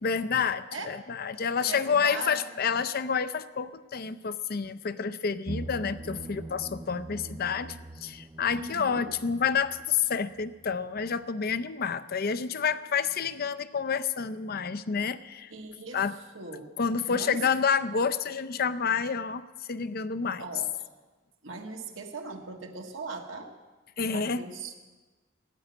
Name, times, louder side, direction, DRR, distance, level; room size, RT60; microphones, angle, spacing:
voice 1, 0.0-7.8 8.0-15.5 15.9-16.1 16.8-20.4 24.0-24.4, left 6 dB, 50° left, 13 dB, 0.6 m, -29 dB
voice 2, 1.6-2.4 8.6-9.0 15.5-16.0 16.3-16.7 17.1-17.4 20.4-20.7 21.4-23.5 24.1-24.8, right 3 dB, 75° right, 2 dB, 1.5 m, -39 dB
sound 1, 5.5-11.3 11.5-11.6, right 2 dB, 20° right, 0.4 m, -43 dB
14.5 x 8.5 x 9.4 m, 1.3 s
head